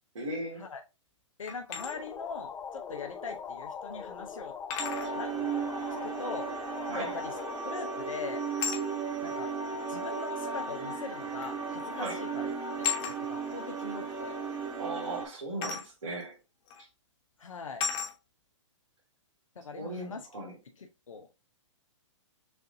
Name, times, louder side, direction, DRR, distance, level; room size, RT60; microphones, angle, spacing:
voice 1, 0.1-0.6 5.0-5.1 6.9-7.2 12.0-12.2 14.8-16.4 16.8-16.9 19.8-20.6, right 2 dB, 75° right, 2.6 m, -37 dB
voice 2, 1.4-4.5 5.1-5.5 6.0-6.6 6.9-7.3 7.6-8.5 9.2-9.5 9.9-12.5 13.0-14.3 17.4-17.9 19.6-20.3 20.8-21.3, left 5 dB, 85° left, 0.8 m, -41 dB
sound 1, 1.5-1.9 3.4-3.5 4.7-5.1 7.4-7.7 8.6-8.9 10.1-10.2 11.4-11.6 11.9-12.2 12.8-13.2 15.6-15.9 16.7-16.8 17.8-18.1, left 7 dB, 35° left, 1.3 m, -34 dB
sound 2, 1.7-9.1, left 6 dB, 15° left, 0.5 m, -42 dB
sound 3, 4.8-15.3, right 5 dB, 20° right, 1.3 m, -35 dB
6.6 x 2.6 x 2.7 m
hypercardioid pair, 125°, 16 cm